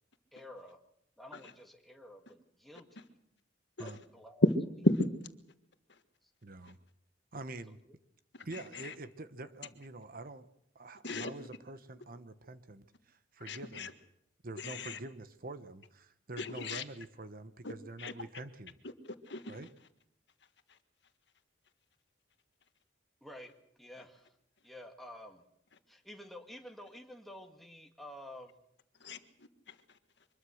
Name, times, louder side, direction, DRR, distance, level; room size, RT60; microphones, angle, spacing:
voice 1, 0.3-0.8 1.2-3.2 3.8-4.4 6.2-6.3 7.9-8.0 23.2-24.4 24.6-25.4 25.9-28.6, left 1 dB, ahead, 2.0 m, -51 dB
voice 2, 6.4-6.8 7.3-7.8 8.4-10.5 10.7-13.9 14.4-18.7 19.5-19.7, right 2 dB, 50° right, 1.1 m, -46 dB
voice 3, 8.3-8.9 11.0-11.3 13.4-13.9 14.6-15.0 16.4-16.8 17.6-17.7 18.0-18.1 19.0-19.6 20.7-20.8 29.0-30.0, left 1 dB, 65° left, 1.6 m, -33 dB
24.5 x 21.0 x 6.5 m
head